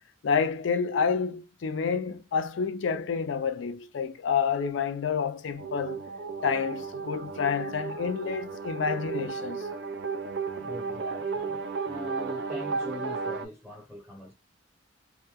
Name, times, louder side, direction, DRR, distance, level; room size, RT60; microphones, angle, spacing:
voice 1, 0.2-6.0 6.4-9.7, left 6 dB, 70° left, 0.4 m, -29 dB
sound 1, 5.6-13.5, right 4 dB, 60° right, 0.5 m, -34 dB
voice 2, 10.6-14.3, left 1 dB, 5° left, 0.7 m, -42 dB
3.0 x 2.2 x 2.3 m
head